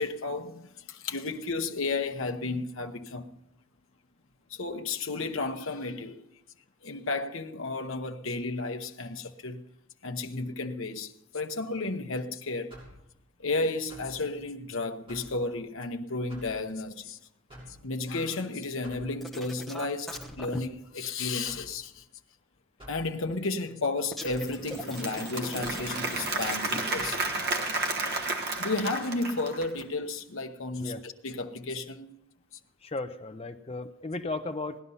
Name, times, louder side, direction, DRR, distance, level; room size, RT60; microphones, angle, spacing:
voice 1, 0.0-3.3 4.5-6.2 6.8-9.6 10.0-12.7 13.4-17.2 17.8-22.0 22.9-27.2 28.6-32.2, left 3 dB, 60° left, 0.9 m, -33 dB
sound 1, 12.7-13.0 13.9-14.2 15.1-15.4 16.3-16.6 17.5-17.8 18.8-19.1 20.1-20.4 21.4-21.7 22.8-23.0 24.2-24.5 25.6-25.9 26.9-27.2, equal, 25° right, 6.7 m, -47 dB
sound 2, 19.2-20.6 24.1-27.1 29.6-29.8, left 1 dB, ahead, 1.0 m, -41 dB
Applause / Crowd, 24.4-29.8, right 2 dB, 45° right, 1.3 m, -32 dB
voice 2, 32.8-34.8, left 2 dB, 25° left, 0.6 m, -35 dB
18.0 x 11.0 x 5.6 m
head